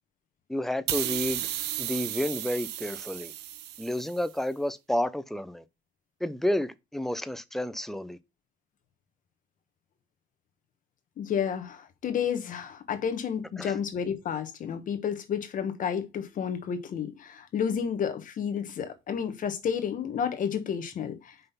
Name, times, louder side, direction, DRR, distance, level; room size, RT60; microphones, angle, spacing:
voice 1, 0.5-1.5 1.8-3.3 3.8-5.6 6.2-8.2 13.6-13.7, left 1 dB, ahead, 0.6 m, -30 dB
sound 1, 0.9-4.3, right 12 dB, 80° right, 0.8 m, -34 dB
voice 2, 11.2-21.3, left 7 dB, 50° left, 1.3 m, -31 dB
5.5 x 3.9 x 5.6 m
cardioid pair, 110°, 17 cm